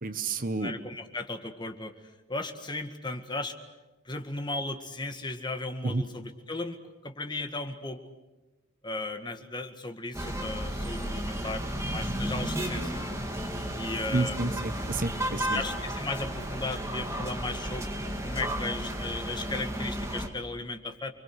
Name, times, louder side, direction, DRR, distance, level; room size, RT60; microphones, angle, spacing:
voice 1, 0.0-0.7 5.8-6.0 14.1-15.6, right 3 dB, 45° right, 11 dB, 1.1 m, -30 dB
voice 2, 0.6-1.9 2.3-3.6 4.1-8.0 8.8-13.0 13.7-14.6 15.4-21.1, left 2 dB, 25° left, 6 dB, 1.8 m, -36 dB
sound 1, 10.1-20.3, equal, 15° right, 2.7 m, -33 dB
29.5 x 22.5 x 8.0 m, 1.1 s
head